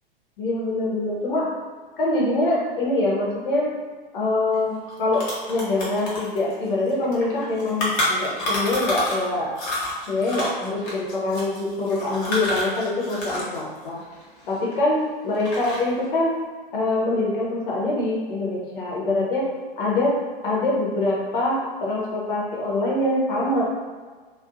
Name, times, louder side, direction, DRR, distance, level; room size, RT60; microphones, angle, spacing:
voice 1, 0.4-1.5 2.0-3.7 4.1-9.5 10.1-14.0 14.5-15.0 15.2-16.4 16.7-19.4 19.8-20.1 20.4-23.6, left 2 dB, 60° left, -5 dB, 0.9 m, -24 dB
sound 1, 4.5-4.6 4.9-9.3 9.5-13.6 13.8-15.0 15.3-16.0, left 1 dB, 30° left, 0.8 m, -29 dB
2.6 x 2.4 x 2.4 m, 1.5 s
figure-of-eight pair, 100°, 29 cm